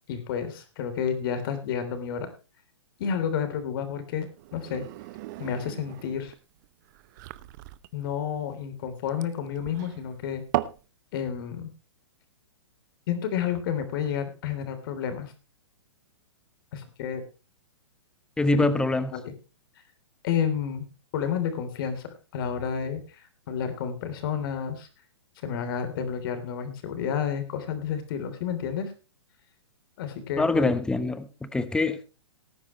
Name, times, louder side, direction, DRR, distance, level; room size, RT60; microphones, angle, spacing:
voice 1, 0.1-2.3 3.0-4.8 5.4-6.3 7.9-10.4 11.1-11.7 13.1-15.3 16.7-17.2 18.5-18.6 19.1-19.3 20.2-20.8 21.1-23.0 23.5-24.9 25.4-28.9 30.0-30.8, left 8 dB, 50° left, 9 dB, 3.4 m, -30 dB
sound 1, 4.4-10.8, right 16 dB, 40° right, 0.8 m, -37 dB
voice 2, 18.4-19.1 30.4-32.0, left 2 dB, 5° left, 14 dB, 1.0 m, -24 dB
18.5 x 9.7 x 3.1 m, 0.32 s
hypercardioid pair, 140°, 15 cm